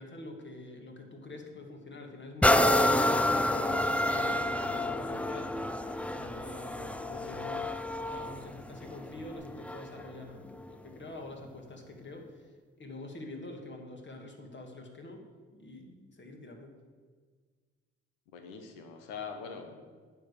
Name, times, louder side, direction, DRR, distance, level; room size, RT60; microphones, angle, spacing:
voice 1, 0.0-5.8 6.1-7.7 8.1-12.5 12.8-15.2 15.5-16.8, left 2 dB, 35° left, 3 dB, 2.1 m, -46 dB
sound 1, 2.4-10.0 10.6-10.7, left 1 dB, 5° left, 0.5 m, -29 dB
voice 2, 18.3-19.9, left 5 dB, 85° left, 5 dB, 1.2 m, -43 dB
9.1 x 5.2 x 6.9 m, 1.5 s
supercardioid pair, 50°, 31 cm